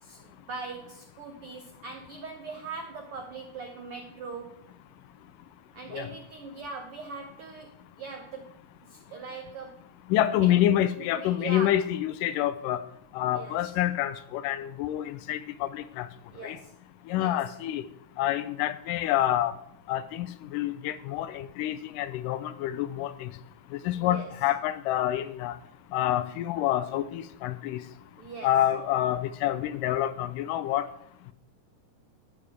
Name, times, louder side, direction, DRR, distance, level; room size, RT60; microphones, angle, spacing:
voice 1, 0.0-4.6 5.7-9.9 10.4-10.6 11.0-11.8 13.3-13.8 16.3-16.7 17.2-17.4 24.0-24.3 28.2-28.5, right 4 dB, 85° right, 4 dB, 1.2 m, -41 dB
voice 2, 10.1-12.8 13.1-16.1 16.4-16.6 17.1-17.8 18.2-19.5 19.9-23.3 23.9-25.6 25.9-27.8 28.4-30.9, left 12 dB, 85° left, 13 dB, 2.2 m, -27 dB
11.5 x 10.0 x 3.5 m, 0.70 s
omnidirectional pair, 3.8 m